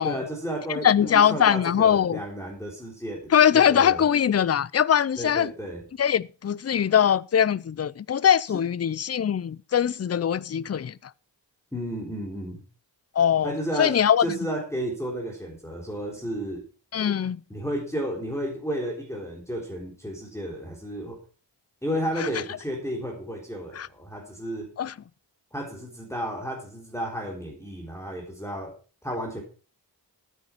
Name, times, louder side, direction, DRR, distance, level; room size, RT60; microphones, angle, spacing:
voice 1, 0.0-4.1 5.2-5.8 11.7-12.6 13.4-16.6 17.5-21.2 21.8-24.7 25.5-28.7 29.0-29.4, equal, 5° left, 3.5 m, -32 dB
voice 2, 0.8-2.2 3.3-5.5 6.0-11.0 13.2-14.4 16.9-17.4 22.2-22.3 23.7-23.9 24.8-24.9, left 9 dB, 35° left, 0.5 m, -22 dB
12.5 x 9.7 x 4.5 m
wide cardioid pair, 85°, 43 cm